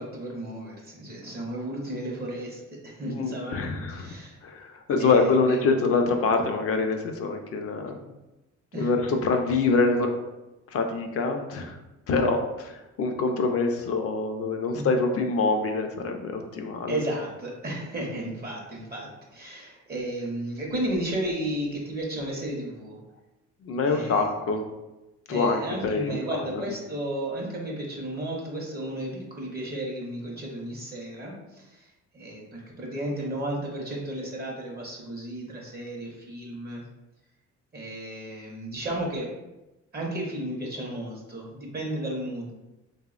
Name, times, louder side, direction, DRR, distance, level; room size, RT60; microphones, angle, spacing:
voice 1, 0.0-4.4 5.0-5.6 8.7-8.9 14.7-14.9 16.9-23.0 23.8-24.3 25.3-36.8 37.7-39.3 39.9-42.5, right 1 dB, 30° right, -2 dB, 0.6 m, -33 dB
voice 2, 3.0-4.1 4.4-8.1 8.7-10.1 10.7-11.8 12.1-16.9 23.6-24.6 25.3-26.4, left 3 dB, 50° left, 4 dB, 0.4 m, -25 dB
3.3 x 2.0 x 2.4 m, 1.0 s
cardioid pair, 90°, 30 cm